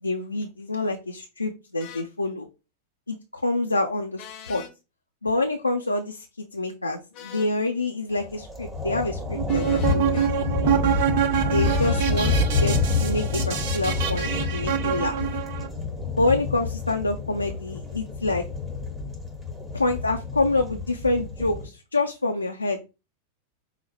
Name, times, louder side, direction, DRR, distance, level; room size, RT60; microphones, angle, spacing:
voice 1, 0.0-2.5 3.1-4.6 5.2-10.3 11.3-15.2 16.2-18.4 19.7-22.8, left 2 dB, 80° left, 3 dB, 0.4 m, -27 dB
sound 1, 1.8-2.1 4.2-4.7 7.1-7.5 9.5-10.3 11.6-12.5, left 10 dB, 40° left, 0.7 m, -40 dB
sound 2, 8.1-21.7, left 3 dB, 10° right, 1.2 m, -28 dB
sound 3, 9.3-15.7, right 9 dB, 50° right, 0.7 m, -26 dB
5.6 x 2.1 x 3.2 m, 0.29 s
figure-of-eight pair, 90°, 0 cm